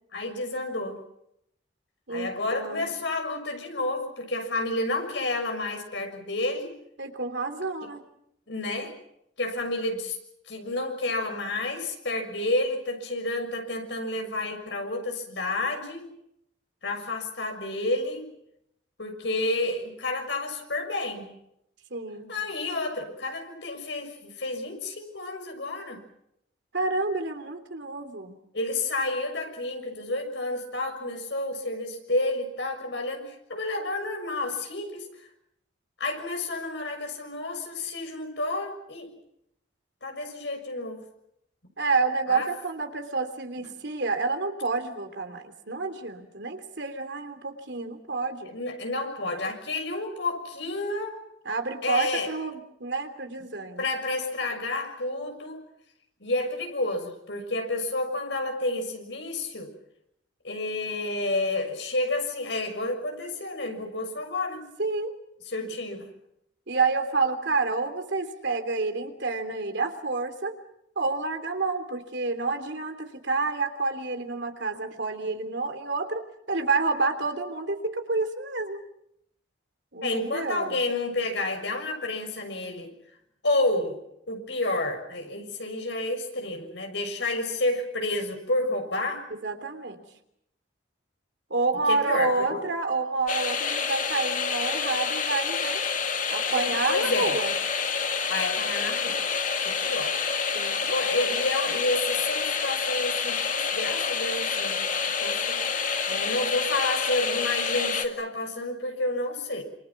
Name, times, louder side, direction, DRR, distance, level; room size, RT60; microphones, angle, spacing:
voice 1, 0.1-1.0 2.1-6.7 8.5-9.0 9.4-10.2 10.5-16.1 16.8-18.2 19.0-21.3 22.3-26.0 28.5-35.1 36.0-39.1 40.0-41.0 42.3-42.5 48.5-51.2 51.8-52.3 53.8-55.6 56.2-59.7 60.4-64.7 65.5-66.1 80.0-82.9 83.4-84.0 84.3-89.3 91.9-92.6 96.5-97.4 98.3-99.2 99.6-100.2 100.7-104.8 105.2-105.8 106.1-109.6, left 2 dB, 70° left, 4 dB, 6.6 m, -30 dB
voice 2, 2.1-2.9 7.0-8.0 21.9-22.3 26.7-28.3 41.8-48.5 51.4-53.9 64.8-65.1 65.6-65.7 66.7-70.6 70.9-78.8 79.9-80.8 89.3-90.0 91.5-95.8 96.3-97.5 100.5-101.1, right 3 dB, 65° right, 7 dB, 3.2 m, -29 dB
sound 1, 93.3-108.1, left 6 dB, 45° left, 2.2 m, -28 dB
28.0 x 27.5 x 6.0 m, 0.77 s
head